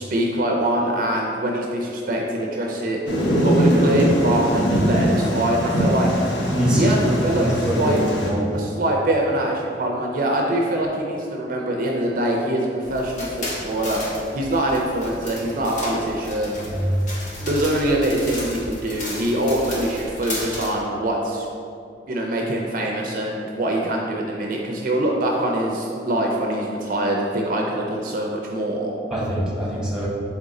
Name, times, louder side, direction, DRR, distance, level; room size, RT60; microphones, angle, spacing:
voice 1, 0.0-3.0 3.4-6.1 6.7-8.0 8.5-16.6 17.4-21.5 22.1-28.9, right 1 dB, 50° right, 0 dB, 0.4 m, -23 dB
Thunder, 3.1-8.3, equal, 90° left, 0.8 m, -21 dB
voice 2, 6.4-6.9 7.3-8.5 16.7-16.9 29.1-30.1, equal, 5° right, -5 dB, 0.9 m, -24 dB
sound 1, 12.8-20.7, left 1 dB, 45° left, 0.9 m, -34 dB
4.0 x 3.5 x 3.7 m, 2.5 s
head